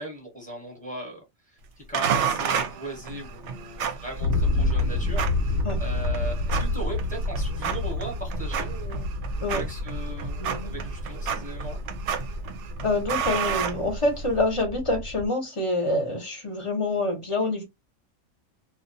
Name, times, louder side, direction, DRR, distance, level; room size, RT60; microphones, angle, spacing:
voice 1, 0.0-1.6 1.9-9.1 9.5-11.8, right 1 dB, 5° left, 0.9 m, -38 dB
sound 1, 1.9-14.4, right 7 dB, 65° right, 0.8 m, -32 dB
sound 2, 3.1-15.3, left 2 dB, 70° left, 0.9 m, -29 dB
voice 2, 10.4-10.8 12.8-17.6, left 2 dB, 30° left, 0.7 m, -26 dB
2.5 x 2.2 x 2.6 m
omnidirectional pair, 1.4 m